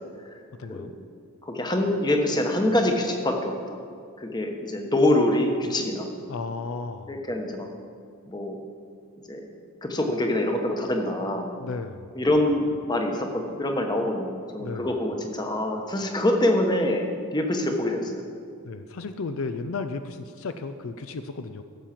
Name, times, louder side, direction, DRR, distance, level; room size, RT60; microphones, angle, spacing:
voice 1, 0.6-0.9 6.3-7.2 11.6-12.1 14.6-14.9 18.6-21.6, left 4 dB, 65° left, 9 dB, 0.5 m, -34 dB
voice 2, 1.4-3.8 4.2-6.1 7.1-7.7 8.3-8.6 9.3-9.4 9.8-11.5 12.2-17.0 17.3-18.2, left 1 dB, 20° left, 3 dB, 1.1 m, -25 dB
15.0 x 7.3 x 5.9 m, 2.3 s
head